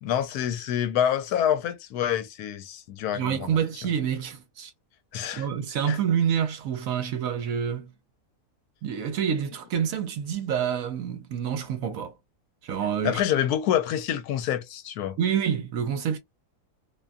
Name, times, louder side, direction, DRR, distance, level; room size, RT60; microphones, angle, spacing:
voice 1, 0.0-3.6 5.1-5.5 5.9-6.0 13.0-15.2, left 10 dB, 80° left, 1.1 m, -27 dB
voice 2, 3.1-4.7 5.3-7.9 8.8-12.1 12.6-13.2 15.2-16.2, right 8 dB, 70° right, 1.0 m, -27 dB
2.7 x 2.3 x 2.4 m
omnidirectional pair, 1.7 m